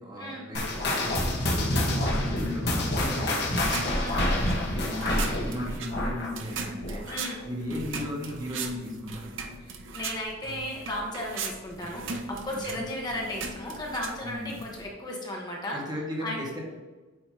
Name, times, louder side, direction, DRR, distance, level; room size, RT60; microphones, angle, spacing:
voice 1, 0.0-3.6 4.5-7.0 7.4-9.4 12.5-12.8 14.2-14.6 15.7-16.6, left 1 dB, 20° right, -2 dB, 1.5 m, -36 dB
sound 1, 0.5-7.4 7.7-8.0 8.6-8.7 9.5-9.6, left 1 dB, 60° left, 1.5 m, -28 dB
sound 2, 3.4-14.9, right 4 dB, 70° right, 0.8 m, -39 dB
voice 2, 3.9-4.3 7.1-7.4 9.6-15.8 16.2-16.4, left 1 dB, 20° left, -2 dB, 1.2 m, -35 dB
8.8 x 3.1 x 4.7 m, 1.2 s
head